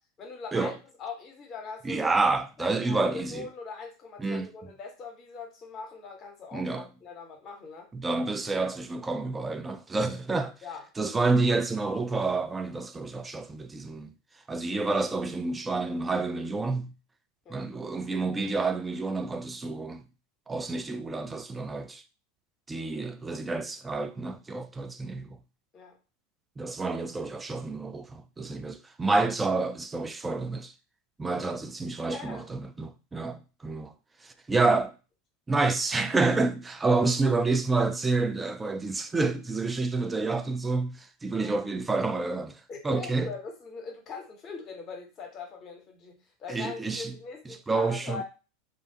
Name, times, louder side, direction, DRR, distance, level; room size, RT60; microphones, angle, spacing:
voice 1, 0.2-2.1 2.6-7.9 10.6-10.8 17.4-17.7 25.7-26.0 31.4-31.6 32.1-32.5 33.3-33.4 36.9-37.2 41.4-41.5 42.7-48.2, left 5 dB, 35° left, 0.9 m, -41 dB
voice 2, 1.8-3.5 4.2-4.5 6.5-6.9 7.9-10.5 11.0-14.1 14.5-16.9 17.5-20.1 20.5-22.0 22.7-25.4 26.6-30.7 31.2-33.9 34.2-34.9 35.5-42.6 42.8-43.3 46.5-47.2 47.7-48.2, right 3 dB, 15° right, 0.3 m, -28 dB
2.5 x 2.2 x 2.7 m
figure-of-eight pair, 80°, 0 cm